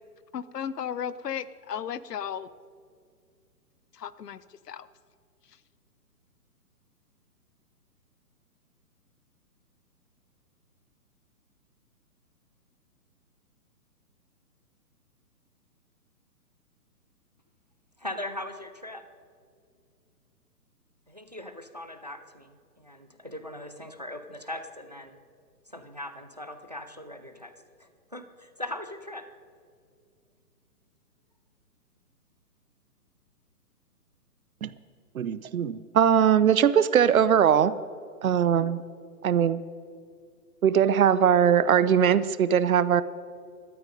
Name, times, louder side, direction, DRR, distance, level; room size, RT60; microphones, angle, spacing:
voice 1, 0.3-2.5 4.0-4.4 4.7-4.9, left 8 dB, 80° left, 16 dB, 0.9 m, -34 dB
voice 2, 18.0-19.0 21.1-25.2 25.7-27.5 27.8-29.3, left 1 dB, 30° right, 10 dB, 0.4 m, -40 dB
voice 3, 35.1-37.7 38.2-38.8 39.2-39.6 40.6-43.0, right 8 dB, 60° right, 16 dB, 0.8 m, -21 dB
16.5 x 13.0 x 5.2 m, 2.2 s
hypercardioid pair, 165°, 47 cm